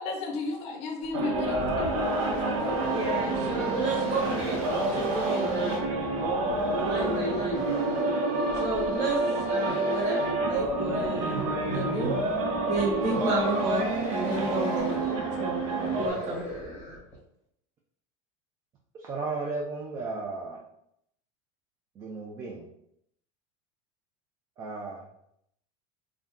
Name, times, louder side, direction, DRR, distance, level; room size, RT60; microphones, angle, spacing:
voice 1, 0.0-1.9 2.4-2.8, left 3 dB, 40° left, 2 dB, 0.5 m, -34 dB
sound 1, 1.0-17.1, left 1 dB, 10° left, 1.0 m, -36 dB
sound 2, 1.1-16.1, right 2 dB, 85° right, 0.7 m, -29 dB
voice 2, 2.9-5.9 6.8-7.6 8.6-9.2 9.4-10.2 10.5-11.4 11.7-12.1 12.6-14.9 15.4-15.6 15.9-16.4, right 2 dB, 45° right, -3 dB, 1.1 m, -31 dB
voice 3, 19.0-20.6 22.0-22.7 24.6-25.0, right 3 dB, 20° right, -2 dB, 0.3 m, -34 dB
2.6 x 2.2 x 3.4 m, 0.75 s
supercardioid pair, 155°, 17 cm